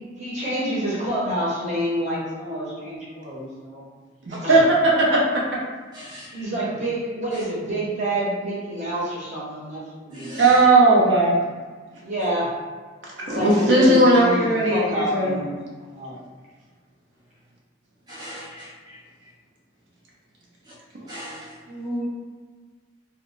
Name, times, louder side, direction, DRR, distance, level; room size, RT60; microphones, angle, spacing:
voice 1, 0.2-3.8 4.3-4.6 6.3-10.4 12.0-12.5 13.3-16.2 21.7-22.0, equal, 40° right, -7 dB, 0.9 m, -28 dB
voice 2, 4.3-5.4 10.4-11.3 13.3-15.3, right 2 dB, 70° right, -5 dB, 0.7 m, -17 dB
voice 3, 5.9-6.4 10.1-10.6 18.1-19.0 21.1-21.5, equal, 20° right, -8 dB, 0.5 m, -39 dB
2.2 x 2.2 x 3.8 m, 1.5 s
head